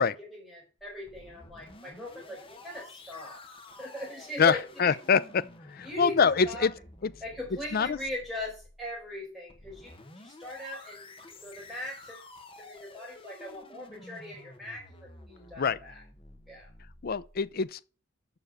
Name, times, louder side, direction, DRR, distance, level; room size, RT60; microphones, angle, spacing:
voice 1, 0.0-3.4 3.8-4.9 5.8-6.7 7.2-11.1 11.4-12.3 12.6-16.0 16.5-16.7, left 1 dB, 5° right, 4.7 m, -40 dB
sound 1, 0.8-17.6, left 2 dB, 25° left, 1.2 m, -51 dB
voice 2, 4.4-6.7 7.0-7.1 7.7-8.0 15.6-15.8 17.0-17.8, left 6 dB, 50° left, 0.5 m, -25 dB
7.0 x 5.7 x 6.6 m
head